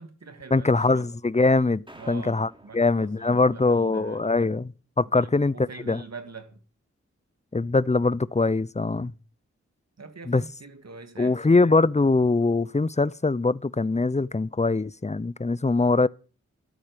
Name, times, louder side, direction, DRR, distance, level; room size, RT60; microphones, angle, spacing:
voice 1, 0.0-1.1 1.9-4.5 5.2-6.6 8.9-9.2 10.0-11.6, right 4 dB, 60° right, 2.6 m, -44 dB
voice 2, 0.5-4.7 5.0-6.0 7.5-9.1 10.3-10.4 11.2-16.1, left 3 dB, 25° left, 0.8 m, -22 dB
sound 1, 1.9-4.3, right 1 dB, 15° right, 3.5 m, -52 dB
13.5 x 13.0 x 5.2 m
cardioid pair, 40°, 29 cm